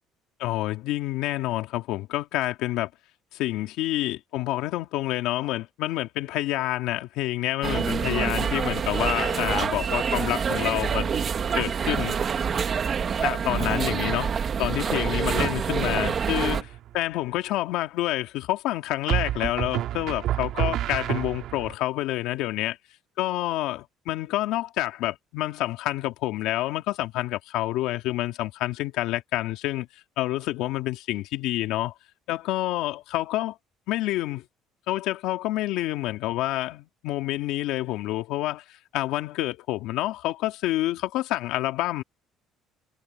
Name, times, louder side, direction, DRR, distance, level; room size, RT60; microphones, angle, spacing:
voice 1, 0.4-2.9 3.3-11.2 11.5-12.2 13.2-14.3 14.6-22.8 23.2-29.9 30.2-31.9 32.3-33.6 33.9-34.5 34.9-42.0, left 16 dB, 80° left, 2.5 m, -28 dB
sound 1, 7.6-16.6, right 6 dB, 35° right, 2.2 m, -26 dB
sound 2, 16.6-17.0 19.1-21.7, right 12 dB, 65° right, 2.3 m, -28 dB
cardioid pair, 125°, 0 cm